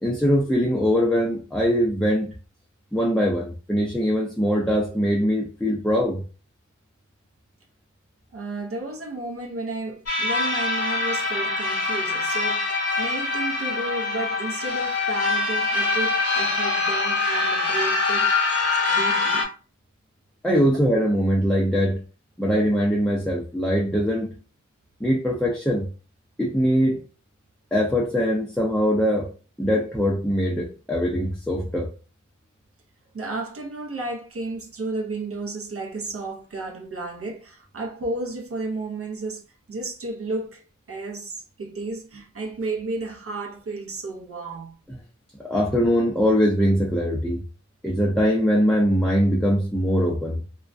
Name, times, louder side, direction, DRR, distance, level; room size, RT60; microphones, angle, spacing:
voice 1, 0.0-2.3 2.9-6.2 20.4-22.0 22.4-24.3 25.0-25.9 26.4-27.0 27.7-29.3 29.6-31.9 44.9-45.0 45.4-47.4 47.8-50.4, equal, ahead, 0.5 m, -22 dB
voice 2, 8.3-18.3 18.9-19.5 33.1-39.4 39.7-44.8, right 3 dB, 50° right, 0.6 m, -33 dB
sound 1, 10.1-19.4, left 3 dB, 50° left, 0.9 m, -24 dB
2.3 x 2.1 x 2.5 m
cardioid pair, 60°, 30 cm